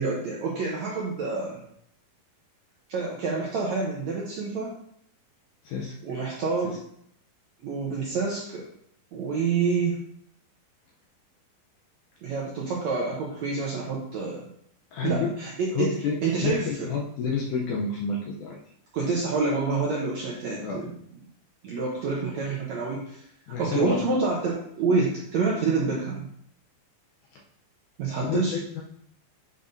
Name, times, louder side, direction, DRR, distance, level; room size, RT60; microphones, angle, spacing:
voice 1, 0.0-1.6 2.9-4.7 6.0-6.8 7.6-8.7 9.1-10.0 12.2-14.4 15.0-15.9 16.2-16.9 18.9-20.9 21.6-23.3 23.6-26.3 28.0-28.5, right 4 dB, 75° right, -3 dB, 1.6 m, -27 dB
voice 2, 5.6-6.0 6.6-6.8 14.9-15.3 15.7-18.6 20.6-20.9 23.5-24.0 27.3-27.4 28.2-28.8, left 5 dB, 75° left, -2 dB, 1.9 m, -30 dB
8.5 x 5.3 x 2.6 m, 0.69 s
omnidirectional pair, 4.3 m